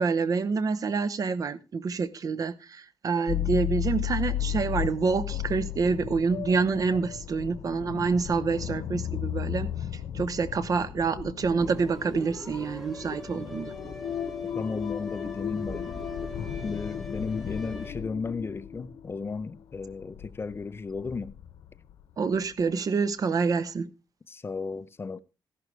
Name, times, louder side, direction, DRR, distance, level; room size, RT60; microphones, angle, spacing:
voice 1, 0.0-13.7 22.2-23.9, right 4 dB, 50° right, 0.8 m, -27 dB
sound 1, 3.3-22.0 22.5-22.6, left 11 dB, 90° left, 1.0 m, -35 dB
sound 2, 11.6-17.9, left 2 dB, ahead, 2.8 m, -40 dB
voice 2, 14.5-16.0 16.6-21.3 24.3-25.2, left 4 dB, 30° left, 0.6 m, -34 dB
13.5 x 11.5 x 3.2 m
cardioid pair, 110°, 8 cm